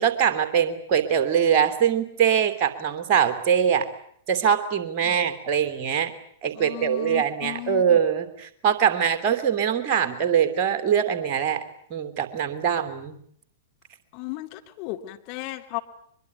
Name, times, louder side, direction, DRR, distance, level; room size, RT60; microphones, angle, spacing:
voice 1, 0.0-3.9 4.3-6.1 6.4-11.6 11.9-13.2, right 8 dB, 35° right, 11 dB, 3.2 m, -23 dB
voice 2, 6.5-8.0 14.1-15.8, left 18 dB, 40° left, 5 dB, 2.7 m, -35 dB
23.5 x 23.0 x 9.3 m, 0.65 s
figure-of-eight pair, 105°, 0 cm